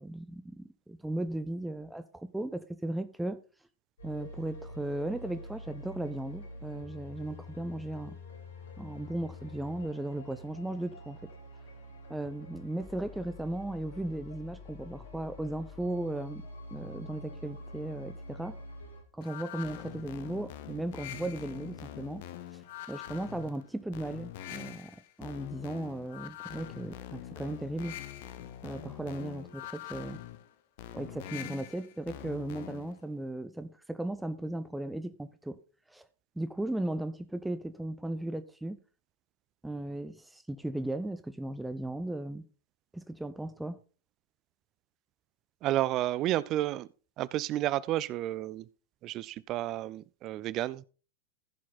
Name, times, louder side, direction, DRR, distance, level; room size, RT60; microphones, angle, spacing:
voice 1, 0.0-3.4 4.0-8.2 8.8-11.2 12.1-16.4 16.7-18.6 19.1-22.2 22.5-22.6 22.9-27.9 28.6-30.2 30.9-35.6 35.9-36.0 36.4-38.8 39.6-42.4 42.9-43.8, right 1 dB, 5° right, 0.7 m, -36 dB
sound 1, 4.0-19.0, left 1 dB, 70° left, 2.9 m, -46 dB
sound 2, 19.2-33.0, left 12 dB, 50° left, 0.8 m, -44 dB
voice 2, 45.6-46.9 47.2-48.7 49.0-50.8, right 14 dB, 35° right, 0.4 m, -31 dB
15.0 x 6.3 x 4.2 m
figure-of-eight pair, 90°, 0 cm